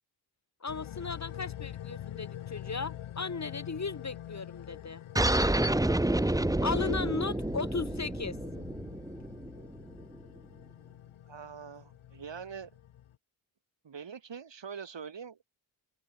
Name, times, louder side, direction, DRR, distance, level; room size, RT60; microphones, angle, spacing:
voice 1, 0.6-5.0 6.6-8.4, left 4 dB, 35° left, 2.2 m, -36 dB
sound 1, 0.7-13.2, left 11 dB, 75° left, 2.2 m, -45 dB
sound 2, 5.1-10.2, right 1 dB, 5° right, 1.1 m, -29 dB
voice 2, 11.3-12.7 13.8-15.4, right 6 dB, 60° right, 5.8 m, -43 dB
open air
supercardioid pair, 40°, 49 cm